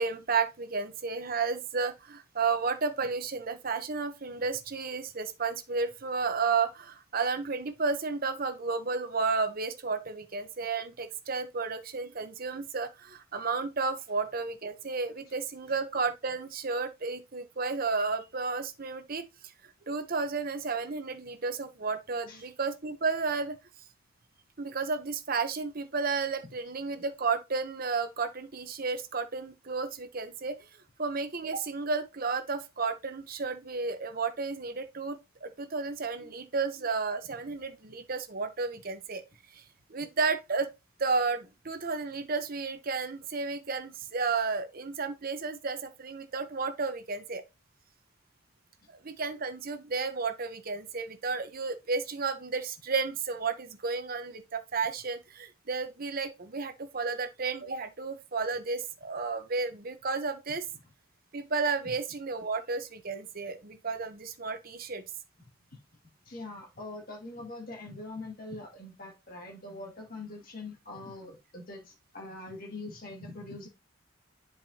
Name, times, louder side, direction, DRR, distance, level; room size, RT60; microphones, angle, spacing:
voice 1, 0.0-19.2 19.6-23.6 24.6-30.6 31.0-39.2 39.5-39.6 39.9-40.7 41.0-47.4 48.9-60.7 61.3-65.0, right 4 dB, 45° right, 0.9 m, -32 dB
voice 2, 66.3-73.7, left 2 dB, 45° left, 2.2 m, -43 dB
11.0 x 4.7 x 2.8 m
head